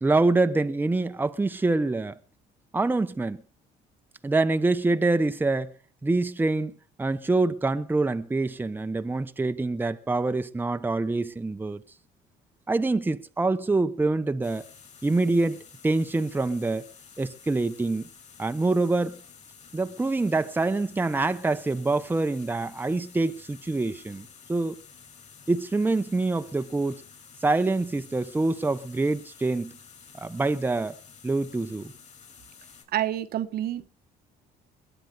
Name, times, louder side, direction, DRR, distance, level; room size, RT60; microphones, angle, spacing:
voice 1, 0.0-2.2 2.7-3.4 4.2-5.7 6.0-11.8 12.7-14.6 15.0-16.9 17.2-18.0 18.4-19.2 19.7-24.8 25.5-27.0 27.4-29.7 30.1-30.9 31.2-31.9, right 3 dB, 10° right, 0.9 m, -25 dB
sound 1, 14.4-32.8, left 6 dB, 40° left, 6.8 m, -51 dB
voice 2, 32.9-33.9, right 12 dB, 65° right, 1.2 m, -28 dB
21.5 x 8.9 x 6.8 m
cardioid pair, 110°, 17 cm